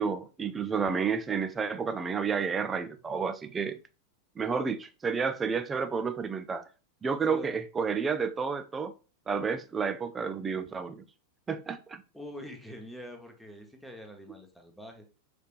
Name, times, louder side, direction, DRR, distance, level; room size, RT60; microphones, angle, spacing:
voice 1, 0.0-3.8 4.4-6.7 7.0-8.9 9.3-11.0 11.5-12.0, right 5 dB, 15° right, 0.5 m, -30 dB
voice 2, 12.1-15.0, equal, ahead, 1.0 m, -45 dB
6.4 x 3.4 x 2.5 m
figure-of-eight pair, 90°, 0 cm